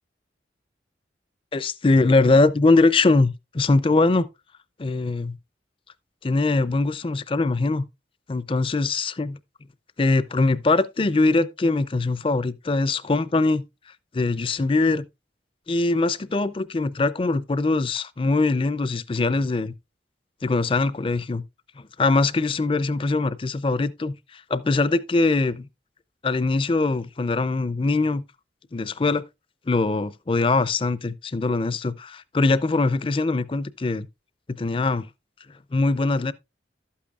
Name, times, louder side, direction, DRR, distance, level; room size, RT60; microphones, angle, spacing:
voice 1, 1.5-4.3 4.8-5.4 6.2-7.8 8.3-9.4 10.0-13.6 14.1-15.0 15.7-19.7 20.4-21.4 21.8-25.7 26.2-28.2 28.7-29.2 29.7-34.1 34.6-35.1 35.7-36.3, left 3 dB, 30° left, 0.4 m, -22 dB
12.0 x 8.5 x 2.4 m
head